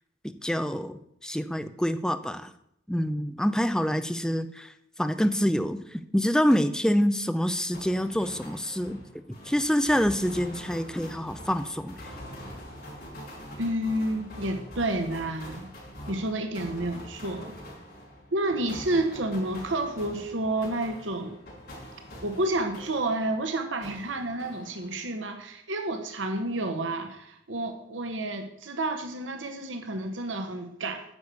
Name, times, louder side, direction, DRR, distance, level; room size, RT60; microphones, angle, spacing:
voice 1, 0.2-2.5 2.9-12.1, equal, 5° left, 9 dB, 0.5 m, -27 dB
sound 1, 7.7-23.5 23.8-25.2, equal, 50° left, 4.6 m, -44 dB
voice 2, 13.6-15.7 16.1-17.6 18.3-21.4 22.2-31.0, right 1 dB, 90° right, 6 dB, 1.2 m, -30 dB
9.7 x 6.2 x 8.2 m, 0.76 s
head